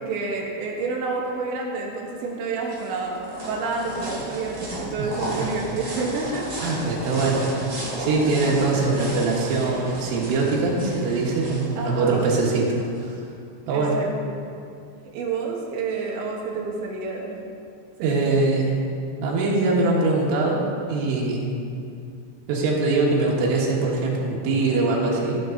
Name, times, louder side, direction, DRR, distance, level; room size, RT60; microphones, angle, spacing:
voice 1, 0.0-6.5 11.8-12.3 13.7-14.4 15.1-17.4 18.0-18.1, right 4 dB, 75° right, -1 dB, 3.5 m, -29 dB
sound 1, 2.2-13.0, right 1 dB, 25° right, 1.8 m, -34 dB
voice 2, 6.6-7.5 8.0-13.2 13.7-14.0 18.0-18.8 19.2-21.5 22.5-25.3, right 3 dB, 90° right, -3 dB, 4.1 m, -22 dB
15.5 x 8.7 x 3.9 m, 2.5 s
omnidirectional pair, 5.6 m